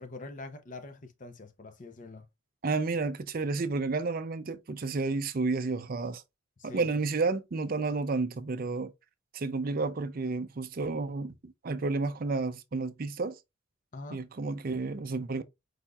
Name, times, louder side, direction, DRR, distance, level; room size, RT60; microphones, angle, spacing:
voice 1, 0.0-2.3 6.6-6.9 13.9-14.2, left 2 dB, 35° left, 0.6 m, -44 dB
voice 2, 2.6-6.2 6.7-8.9 9.3-13.4 14.1-15.4, right 3 dB, 40° right, 0.5 m, -31 dB
4.8 x 4.2 x 2.3 m
head